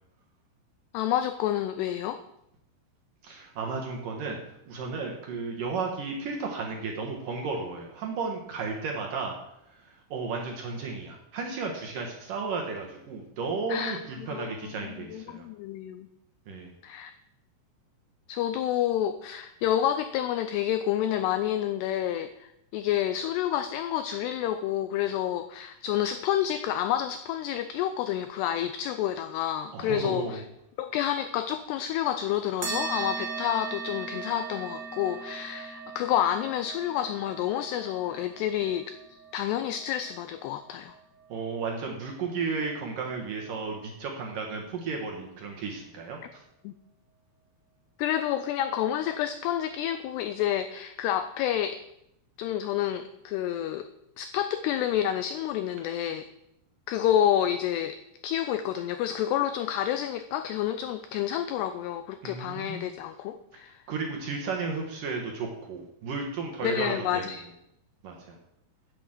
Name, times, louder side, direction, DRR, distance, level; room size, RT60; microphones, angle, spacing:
voice 1, 0.9-2.2 13.7-16.1 16.8-17.1 18.3-30.4 30.8-40.9 46.6-46.7 48.0-51.8 52.4-53.9 54.2-56.3 56.9-58.0 58.2-63.8 66.6-67.4, left 11 dB, 85° left, 10 dB, 2.3 m, -29 dB
voice 2, 3.2-4.4 4.7-9.4 9.9-15.4 16.5-16.7 29.7-30.4 41.3-46.4 62.2-62.8 63.9-67.2 68.0-68.4, right 4 dB, 65° right, 1 dB, 2.3 m, -33 dB
sound 1, 32.6-41.5, right 5 dB, 45° right, 1.3 m, -39 dB
10.0 x 8.6 x 7.7 m, 0.81 s
omnidirectional pair, 5.4 m